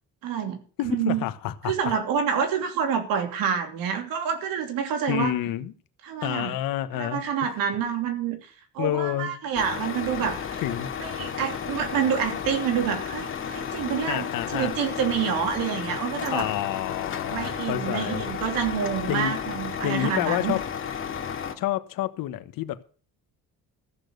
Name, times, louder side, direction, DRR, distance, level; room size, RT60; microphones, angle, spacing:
voice 1, 0.2-1.2 1.6-5.3 6.0-6.5 6.9-10.6 11.0-16.5 17.3-20.5, right 7 dB, 75° right, 3.0 m, -28 dB
voice 2, 0.8-1.7 5.1-5.7 6.2-7.2 8.8-9.3 10.6-10.9 14.1-14.7 16.3-18.2 19.1-19.4 19.8-20.6 21.6-22.8, left 13 dB, 70° left, 1.2 m, -28 dB
Truck, 9.5-21.5, left 7 dB, 35° left, 2.1 m, -33 dB
14.5 x 6.7 x 7.9 m
cardioid pair, 110°, 35 cm